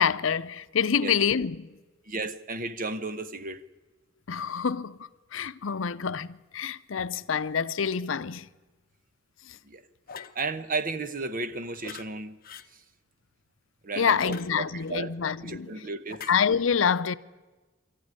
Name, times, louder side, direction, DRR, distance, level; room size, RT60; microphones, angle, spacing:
voice 1, 0.0-1.8 4.3-8.5 14.0-15.8 16.3-17.1, left 6 dB, 80° left, 0.6 m, -27 dB
voice 2, 2.1-3.6 9.6-9.9 10.3-12.4 13.8-15.1 15.4-16.3, right 3 dB, 45° right, 1.0 m, -34 dB
sound 1, 10.1-10.4 11.8-12.1 12.4-12.7 14.0-14.9 16.1-16.3, left 7 dB, 50° left, 0.8 m, -43 dB
25.5 x 14.0 x 9.7 m
head